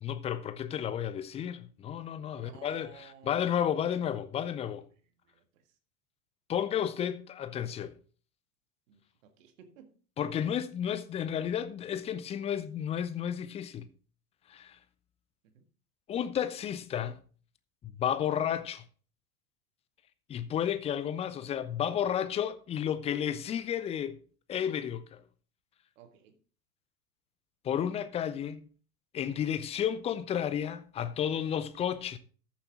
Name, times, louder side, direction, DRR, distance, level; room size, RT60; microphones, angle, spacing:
voice 1, 0.0-4.8 6.5-7.9 10.2-13.9 14.5-14.8 16.1-17.2 17.8-18.8 20.3-24.2 24.5-25.2 27.6-28.6 29.1-32.2, left 9 dB, 15° left, 0.5 m, -32 dB
voice 2, 2.3-3.4 5.3-5.6 8.9-10.0 15.4-15.6 26.0-26.4, right 7 dB, 55° right, 1.9 m, -55 dB
13.5 x 7.3 x 3.7 m
figure-of-eight pair, 90°, 46 cm